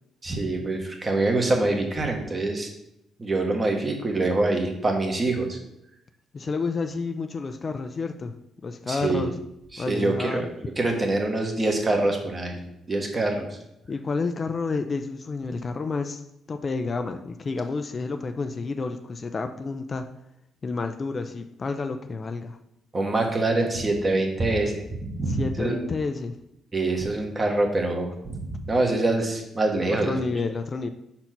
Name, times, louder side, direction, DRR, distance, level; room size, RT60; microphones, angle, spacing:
voice 1, 0.2-2.7 3.2-5.6 8.9-9.3 9.7-10.5 10.8-12.6 12.9-13.6 22.9-25.7 26.7-30.2, right 2 dB, 30° right, 2 dB, 1.5 m, -25 dB
voice 2, 6.3-8.3 8.6-9.4 9.8-10.4 13.9-16.2 16.5-20.1 20.6-22.6 25.3-26.4 29.9-30.9, left 4 dB, 35° left, 7 dB, 0.5 m, -30 dB
5.3 x 4.4 x 5.9 m, 0.82 s
cardioid pair, 90°, 0 cm